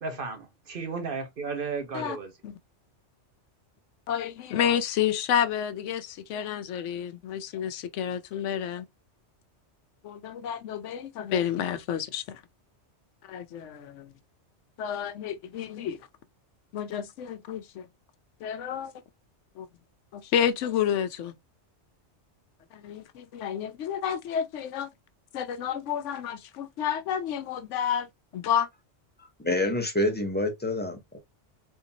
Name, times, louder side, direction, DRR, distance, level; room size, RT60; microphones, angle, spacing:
voice 1, 0.0-2.3, right 4 dB, 55° right, 0.9 m, -34 dB
voice 2, 4.1-8.8 10.0-12.4 13.3-14.1 14.8-16.0 16.7-17.9 18.4-18.9 19.6-19.7 20.1-21.3 22.7-24.9 25.3-28.1 28.3-28.7, left 9 dB, 90° left, 0.9 m, -30 dB
voice 3, 29.2-31.2, left 1 dB, 10° left, 0.7 m, -28 dB
3.6 x 2.7 x 2.6 m
omnidirectional pair, 1.2 m